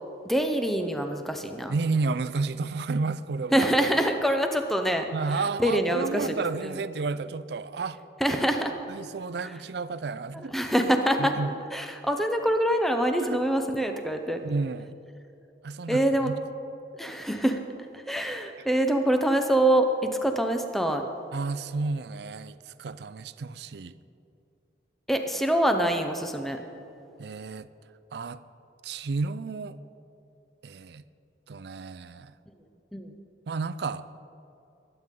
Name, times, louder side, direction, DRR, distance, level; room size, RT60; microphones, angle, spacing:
voice 1, 0.2-1.7 3.5-6.8 8.2-8.7 9.4-9.5 10.3-11.3 11.7-14.4 15.9-16.3 17.0-17.6 17.9-21.0 25.1-26.6 32.9-33.1, right 1 dB, ahead, 5 dB, 0.7 m, -25 dB
voice 2, 1.7-3.7 5.1-8.0 8.9-10.5 11.2-11.5 13.2-13.4 14.4-15.0 15.6-16.3 21.3-23.9 27.2-27.7 28.1-28.4 28.8-29.8 30.6-31.0 31.5-32.3 33.5-34.0, right 4 dB, 65° right, 14 dB, 0.4 m, -31 dB
21.5 x 9.3 x 3.8 m, 2.7 s
head